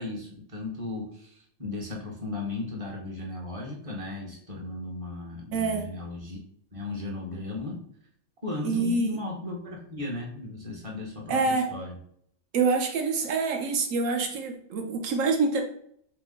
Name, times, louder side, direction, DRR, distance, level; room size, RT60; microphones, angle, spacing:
voice 1, 0.0-6.4 6.7-7.8 8.4-12.0, left 2 dB, 30° right, -2 dB, 0.9 m, -36 dB
voice 2, 5.5-5.9 8.6-9.2 11.3-11.7 12.5-15.6, right 4 dB, 80° right, 3 dB, 1.1 m, -26 dB
3.6 x 2.9 x 3.7 m, 0.65 s
omnidirectional pair, 1.4 m